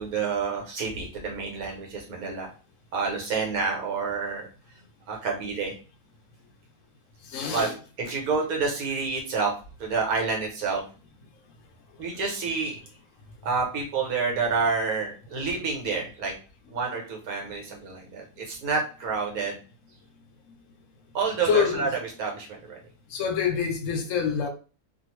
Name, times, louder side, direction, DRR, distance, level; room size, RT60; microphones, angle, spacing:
voice 1, 0.0-2.5 2.9-4.5 5.1-5.7 7.5-7.7 8.0-9.5 9.8-10.8 12.0-12.8 13.4-16.3 16.7-19.6 21.1-21.9 22.2-22.8, right 4 dB, 80° right, 1.4 m, -28 dB
voice 2, 7.3-7.8 16.8-17.0 21.4-22.0 23.1-24.5, left 6 dB, 65° left, 0.9 m, -26 dB
2.6 x 2.5 x 3.0 m
omnidirectional pair, 1.5 m